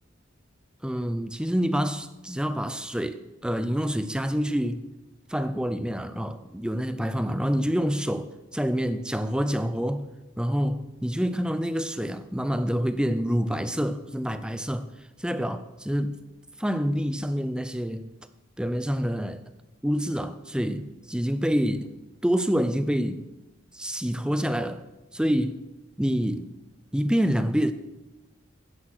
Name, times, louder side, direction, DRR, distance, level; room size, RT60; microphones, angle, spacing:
voice 1, 0.8-4.8 5.3-10.1 10.4-14.9 15.2-16.2 16.6-18.1 18.6-19.4 19.8-21.9 22.2-23.3 23.7-24.8 25.1-25.6 26.0-26.5 26.9-27.7, equal, 5° right, 0.5 m, -27 dB
10.5 x 9.9 x 6.5 m
head